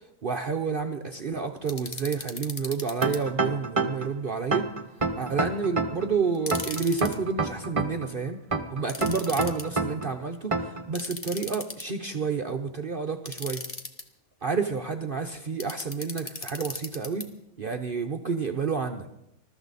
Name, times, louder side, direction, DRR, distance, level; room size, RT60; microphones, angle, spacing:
voice 1, 0.2-4.7 5.2-8.4 8.7-13.6 14.4-17.3 17.6-19.1, right 5 dB, 45° right, 5 dB, 0.8 m, -30 dB
sound 1, 1.7-3.2 6.3-7.2 8.9-9.6 11.0-12.0 13.3-14.0 15.6-17.3, left 3 dB, 25° left, 1.1 m, -37 dB
sound 2, 3.0-4.1 4.5-6.1 6.5-8.1 8.5-10.1 10.5-10.8, right 3 dB, 25° right, 1.0 m, -27 dB
21.0 x 13.5 x 4.1 m, 0.81 s
omnidirectional pair, 1.5 m